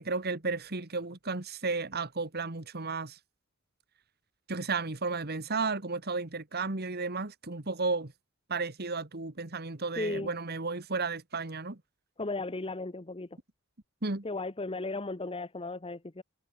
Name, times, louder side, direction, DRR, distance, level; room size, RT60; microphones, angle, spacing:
voice 1, 0.0-3.2 4.5-8.1 8.5-11.8 14.0-14.2, right 4 dB, 45° right, 1.8 m, -33 dB
voice 2, 10.0-10.3 12.2-13.3 14.2-16.2, left 2 dB, 25° left, 0.9 m, -35 dB
head